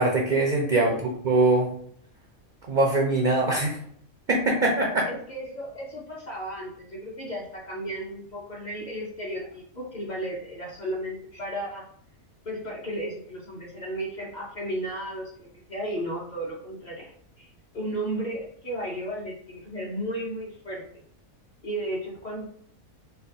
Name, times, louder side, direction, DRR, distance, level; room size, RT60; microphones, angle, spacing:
voice 1, 0.0-1.7 2.7-3.8 4.3-5.1, right 2 dB, 70° right, 0 dB, 0.4 m, -22 dB
voice 2, 0.6-1.0 5.1-11.9 12.4-20.8 21.6-22.4, right 1 dB, 45° left, -3 dB, 0.6 m, -34 dB
4.2 x 2.2 x 2.7 m, 0.62 s
omnidirectional pair, 1.5 m